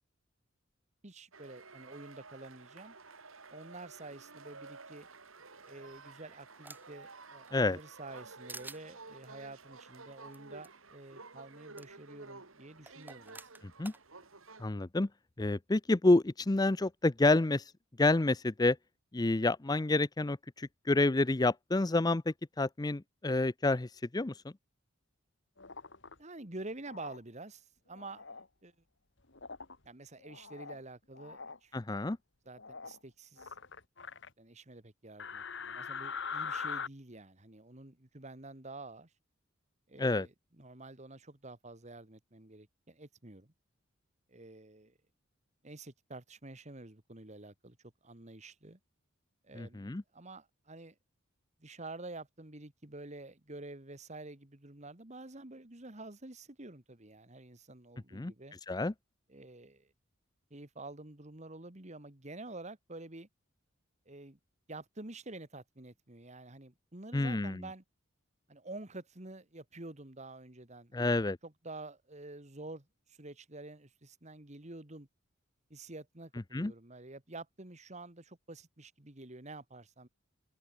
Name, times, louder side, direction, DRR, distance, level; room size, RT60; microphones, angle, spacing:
voice 1, 1.0-3.0 3.5-5.1 5.7-13.5 26.2-28.2 28.6-28.7 29.8-31.7 32.5-33.5 34.4-39.1 39.9-43.5 44.3-44.9 45.6-47.8 48.0-48.8 49.4-51.0 51.6-58.6 59.3-59.9 60.5-63.3 64.1-64.4 64.7-67.8 68.5-75.1 75.7-80.1, right 2 dB, 35° right, 2.0 m, -49 dB
sound 1, 1.3-14.7, right 4 dB, 90° right, 4.8 m, -52 dB
sound 2, 5.7-7.0 7.5-8.2 8.5-8.8 10.3-10.4 10.6-10.7 11.8-11.9 12.9-14.0, right 3 dB, 10° right, 7.6 m, -49 dB
voice 2, 14.6-15.1 15.4-17.7 18.0-18.8 19.1-24.5 31.7-32.2 40.0-40.3 49.6-50.0 58.1-58.3 58.7-58.9 67.1-67.6 70.9-71.4 76.5-76.7, left 2 dB, 20° left, 0.5 m, -29 dB
sound 3, 25.6-26.1 26.9-27.2 27.9-28.5 29.3-29.8 30.2-30.8 31.1-31.6 32.6-33.0 33.4-34.3 35.2-36.9, left 5 dB, 60° left, 2.6 m, -42 dB
head